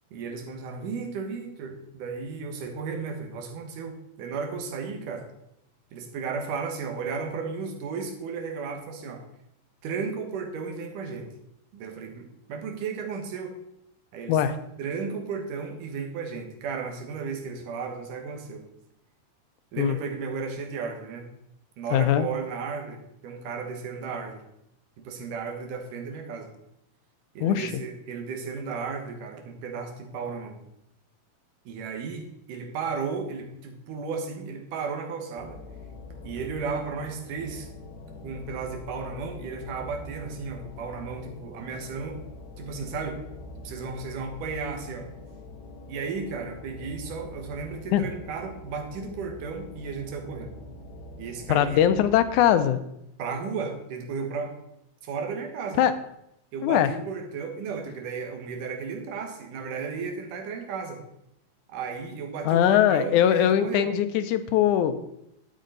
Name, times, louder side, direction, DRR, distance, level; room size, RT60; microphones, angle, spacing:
voice 1, 0.1-5.3 5.9-9.2 9.8-11.3 11.7-13.6 14.1-14.4 14.8-18.6 19.7-21.3 21.8-24.4 25.0-26.5 27.3-30.6 31.7-35.6 36.2-37.7 38.2-42.2 42.6-43.2 43.6-45.1 45.9-50.6 51.2-51.8 53.2-54.6 55.0-55.8 56.5-61.0 61.7-63.9, right 5 dB, 80° right, 4 dB, 2.9 m, -34 dB
voice 2, 21.9-22.3 27.4-27.7 47.9-48.0 51.5-52.8 55.8-55.9 56.6-56.9 62.5-65.0, left 10 dB, 80° left, 11 dB, 2.1 m, -21 dB
sound 1, 35.4-52.6, left 2 dB, 45° left, 1.3 m, -44 dB
12.0 x 8.6 x 3.9 m, 0.80 s
omnidirectional pair, 3.7 m